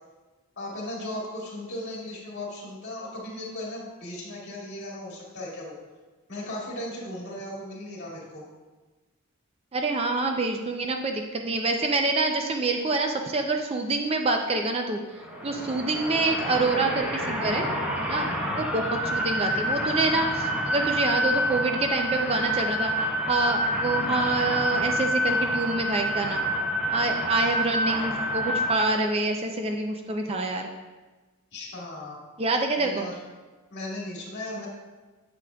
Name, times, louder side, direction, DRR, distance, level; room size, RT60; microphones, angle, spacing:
voice 1, 0.6-5.8 6.3-8.4 15.6-15.8 18.2-18.6 27.3-27.5 31.5-32.2 32.8-33.2 33.7-34.7, left 1 dB, 50° left, -4 dB, 2.1 m, -37 dB
voice 2, 9.7-15.0 15.4-17.7 18.0-18.3 18.5-26.4 26.9-30.7 32.4-33.1, right 3 dB, 25° right, 4 dB, 0.4 m, -26 dB
sound 1, 15.1-28.8, equal, 5° right, 0.9 m, -28 dB
8.4 x 7.7 x 2.3 m, 1.2 s
head